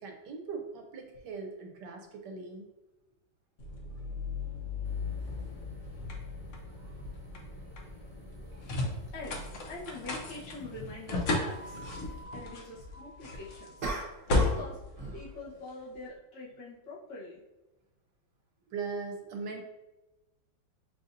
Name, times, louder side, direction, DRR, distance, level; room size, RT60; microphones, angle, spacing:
voice 1, 0.0-2.7 4.5-4.6 6.7-7.1 7.7-8.1 8.4-8.6 15.3-15.6 18.7-19.6, right 4 dB, 75° right, 3 dB, 1.2 m, -41 dB
sound 1, 3.6-15.9, left 2 dB, 60° left, 0.8 m, -35 dB
sound 2, 4.8-12.2, left 2 dB, 15° left, 0.9 m, -53 dB
voice 2, 9.1-11.8 12.3-14.0 14.3-14.8 15.1-17.4, left 2 dB, 85° left, -7 dB, 1.9 m, -44 dB
sound 3, 13.8-14.7 15.0-15.3, right 3 dB, 40° right, 0.8 m, -36 dB
6.5 x 2.6 x 2.6 m, 1.0 s
omnidirectional pair, 2.0 m